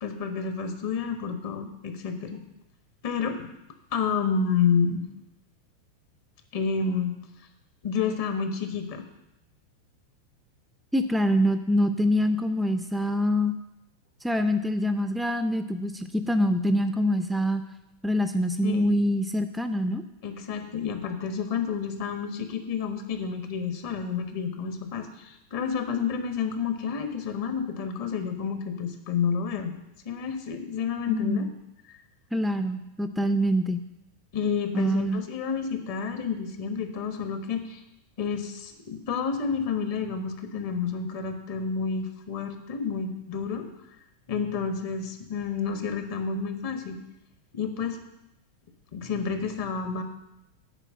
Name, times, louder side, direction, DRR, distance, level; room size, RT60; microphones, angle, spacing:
voice 1, 0.0-2.4 3.0-3.5 3.9-5.1 6.5-7.2 7.8-9.0 18.6-19.0 20.2-29.7 30.0-31.5 34.3-37.8 38.2-43.7 44.3-47.0 47.5-48.0 48.9-50.0, left 6 dB, 50° left, 7 dB, 1.2 m, -29 dB
voice 2, 10.9-13.5 14.2-17.6 18.0-20.0 31.1-31.5 32.3-33.8 34.7-35.2, equal, 5° right, 8 dB, 0.4 m, -25 dB
9.8 x 4.8 x 7.6 m, 0.92 s
figure-of-eight pair, 90°, 0 cm